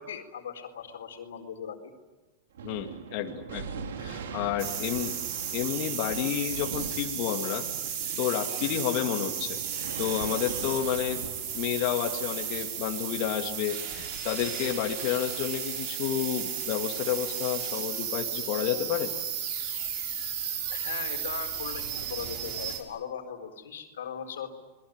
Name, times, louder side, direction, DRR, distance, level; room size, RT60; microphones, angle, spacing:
voice 1, 0.0-1.9 20.7-24.5, left 7 dB, 90° left, 5 dB, 4.3 m, -39 dB
Thunder, 2.5-13.4, right 6 dB, 85° right, 2.8 m, -42 dB
voice 2, 2.6-5.1 5.5-9.6 10.0-11.2 11.5-19.1, left 11 dB, 50° left, 2 dB, 2.5 m, -31 dB
sound 1, 4.6-22.8, right 8 dB, 55° right, 6.6 m, -34 dB
28.5 x 21.5 x 9.1 m, 1.2 s
hypercardioid pair, 125°, 0 cm